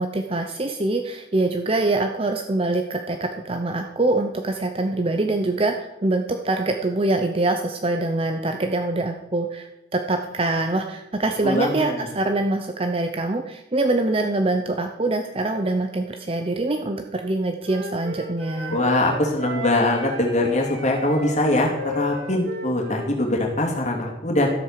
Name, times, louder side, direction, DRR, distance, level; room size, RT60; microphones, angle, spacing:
voice 1, 0.0-18.8, right 2 dB, 30° right, 5 dB, 0.7 m, -24 dB
voice 2, 11.4-12.0 18.7-24.5, left 1 dB, 40° left, 0 dB, 2.6 m, -22 dB
Wind instrument woodwind instrument, 17.6-23.1, equal, 65° right, 2.5 m, -34 dB
13.0 x 8.2 x 6.6 m, 0.94 s
head